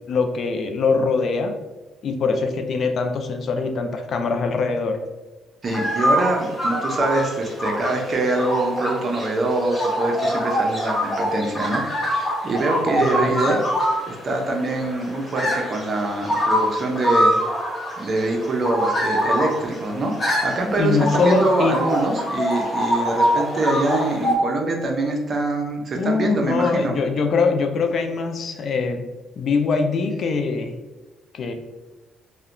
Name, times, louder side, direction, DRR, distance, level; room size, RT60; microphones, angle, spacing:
voice 1, 0.1-1.5 2.0-5.0 13.0-13.4 20.8-21.8 25.9-29.1 29.4-30.7 31.3-31.5, left 4 dB, 55° left, 6 dB, 0.3 m, -22 dB
sound 1, 5.6-24.4, equal, 30° left, 0.8 m, -24 dB
voice 2, 5.6-17.3 18.0-27.0, right 2 dB, 40° right, 2 dB, 0.5 m, -24 dB
2.7 x 2.1 x 2.4 m, 1.2 s
cardioid pair, 95°, 0 cm